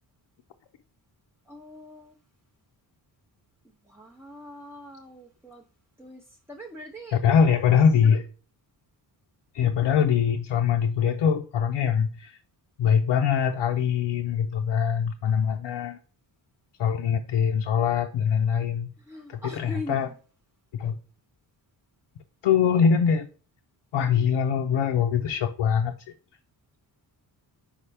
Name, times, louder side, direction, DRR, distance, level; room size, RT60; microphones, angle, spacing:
voice 1, 1.5-2.2 3.8-5.6 6.0-7.2 19.0-20.1, equal, 5° right, 0.5 m, -42 dB
voice 2, 7.2-8.3 9.5-12.4 12.8-16.0 16.8-18.9 19.3-20.1 20.7-20.9 22.4-23.3 23.9-25.9, left 7 dB, 75° left, 0.6 m, -23 dB
5.7 x 5.0 x 3.3 m
wide cardioid pair, 170°, 46 cm